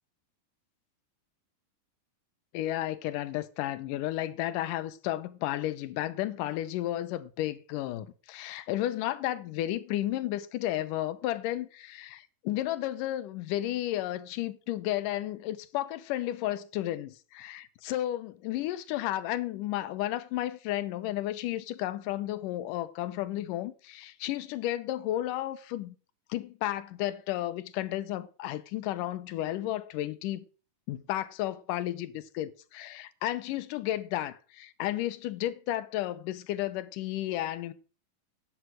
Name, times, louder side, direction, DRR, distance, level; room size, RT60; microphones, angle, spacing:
voice 1, 2.5-26.0 26.3-30.4 30.9-37.7, left 14 dB, 85° left, 2.4 m, -33 dB
11.0 x 7.0 x 6.2 m
omnidirectional pair, 3.7 m